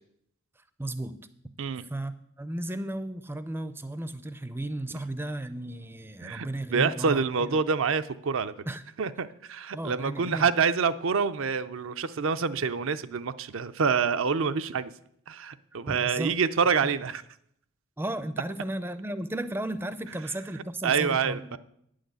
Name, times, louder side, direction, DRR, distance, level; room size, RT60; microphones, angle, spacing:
voice 1, 0.8-1.2 1.8-7.6 8.7-8.8 9.7-10.5 15.9-16.4 16.8-16.9 18.0-21.6, right 1 dB, 10° right, 13 dB, 0.5 m, -34 dB
voice 2, 6.2-8.6 9.0-14.9 15.3-17.2 20.8-21.6, right 5 dB, 65° right, 11 dB, 0.5 m, -27 dB
9.4 x 6.4 x 8.1 m, 0.72 s
head